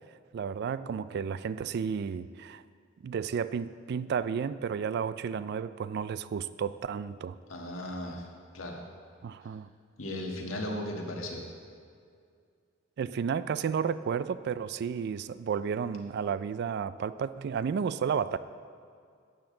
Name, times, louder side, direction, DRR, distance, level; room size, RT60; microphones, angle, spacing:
voice 1, 0.3-2.6 3.0-7.4 9.2-9.7 13.0-18.4, right 7 dB, 55° right, 15 dB, 0.3 m, -32 dB
voice 2, 7.5-8.3 8.5-8.8 10.0-11.4, left 1 dB, 85° left, 1 dB, 1.5 m, -36 dB
12.0 x 8.5 x 3.8 m, 2.3 s
head